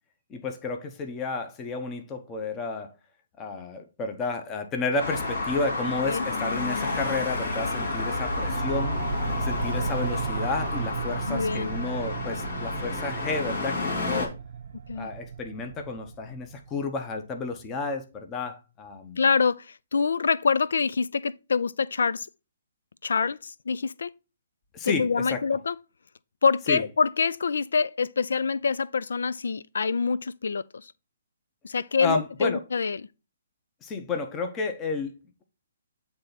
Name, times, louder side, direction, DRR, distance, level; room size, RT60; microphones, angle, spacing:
voice 1, 0.3-2.9 3.4-9.0 9.4-14.3 14.9-19.2 24.7-25.4 26.7-26.8 32.0-32.6 33.8-35.4, left 3 dB, 20° left, 0.9 m, -31 dB
Traffic noise roadway noise, 5.0-14.3, left 3 dB, 55° left, 2.5 m, -30 dB
sound 1, 6.9-17.1, right 7 dB, 60° right, 0.4 m, -35 dB
voice 2, 11.3-11.7 14.9-15.1 19.2-22.3 23.0-24.1 24.8-25.8 26.4-30.9 31.6-33.1, left 5 dB, 80° left, 0.3 m, -26 dB
8.7 x 3.4 x 4.0 m
hypercardioid pair, 155°, 0 cm